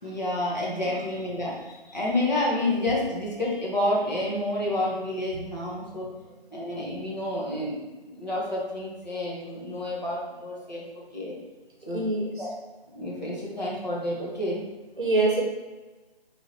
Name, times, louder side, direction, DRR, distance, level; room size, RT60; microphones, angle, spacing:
voice 1, 0.0-6.1 6.5-7.8 8.1-10.8 11.1-11.4 11.9-12.0 12.4-12.5 12.9-14.6, left 1 dB, 45° left, -5 dB, 1.4 m, -29 dB
voice 2, 11.8-12.5 15.0-15.4, right 2 dB, 55° right, 0 dB, 1.0 m, -27 dB
3.7 x 3.2 x 4.2 m, 1.2 s
figure-of-eight pair, 180°, 30 cm